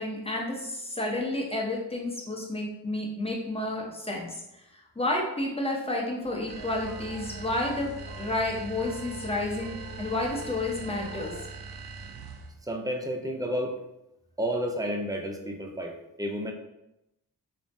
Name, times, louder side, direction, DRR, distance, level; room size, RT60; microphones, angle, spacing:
voice 1, 0.0-4.4 4.7-11.3, left 2 dB, 15° left, -1 dB, 0.8 m, -31 dB
sound 1, 6.2-11.4, right 1 dB, 25° right, 1.1 m, -46 dB
sound 2, 6.5-12.6, right 4 dB, 60° right, 0.6 m, -42 dB
voice 2, 12.7-13.7 14.4-16.5, equal, 10° right, 1 dB, 0.4 m, -31 dB
3.0 x 2.1 x 2.6 m, 0.89 s
cardioid pair, 40°, 42 cm